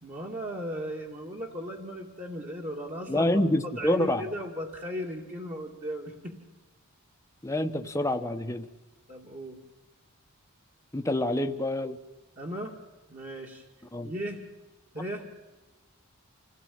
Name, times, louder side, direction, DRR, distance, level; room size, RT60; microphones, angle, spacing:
voice 1, 0.0-6.4 9.1-9.6 12.4-12.8 13.1-13.6 14.0-14.4 14.9-15.2, equal, 30° right, -1 dB, 2.6 m, -36 dB
voice 2, 3.1-4.3 7.4-8.7 10.9-12.0 13.9-14.1, left 1 dB, 15° left, 5 dB, 1.1 m, -27 dB
27.0 x 17.5 x 8.8 m, 1.1 s
head